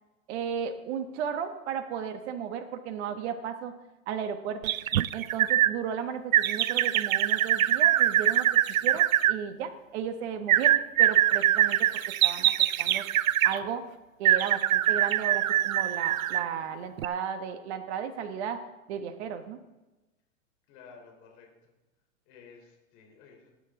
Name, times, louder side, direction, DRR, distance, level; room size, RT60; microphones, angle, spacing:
voice 1, 0.3-3.7 4.1-4.7 5.1-8.5 8.8-11.9 12.2-12.5 12.8-13.1 13.4-13.8 14.2-18.6 18.9-19.6, right 7 dB, 50° right, 8 dB, 1.3 m, -34 dB
sound 1, 4.6-5.7 6.3-9.3 10.5-13.6 14.2-16.5 17.0-17.1, right 12 dB, 80° right, 0.5 m, -23 dB
voice 2, 20.7-21.7 22.3-23.5, left 5 dB, 45° left, 0 dB, 3.8 m, -53 dB
20.0 x 9.3 x 3.8 m, 1.1 s
hypercardioid pair, 115°, 41 cm